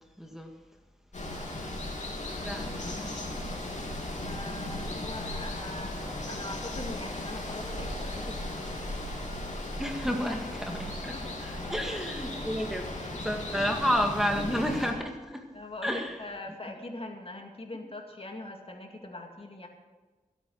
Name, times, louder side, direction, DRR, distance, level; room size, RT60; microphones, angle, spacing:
voice 1, 0.2-0.5 2.4-3.1 9.8-11.1 11.4-12.9 13.2-15.5 15.8-16.2, equal, 5° right, 2 dB, 1.9 m, -31 dB
Water, 1.1-14.9, left 1 dB, 60° left, 3.4 m, -36 dB
voice 2, 4.2-9.0 11.1-11.2 11.8-12.0 13.5-13.7 15.5-19.7, left 2 dB, 45° left, 3 dB, 2.2 m, -42 dB
16.0 x 8.9 x 6.3 m, 1.3 s
cardioid pair, 55°, 14 cm